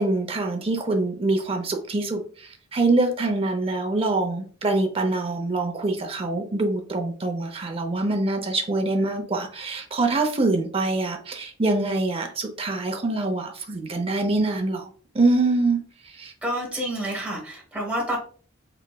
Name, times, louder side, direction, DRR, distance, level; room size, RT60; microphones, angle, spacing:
voice 1, 0.0-14.9 15.1-15.8 16.2-16.3, right 2 dB, 30° right, 4 dB, 0.5 m, -24 dB
voice 2, 16.4-18.2, right 1 dB, 5° right, -3 dB, 0.9 m, -28 dB
3.3 x 2.9 x 2.2 m, 0.43 s
head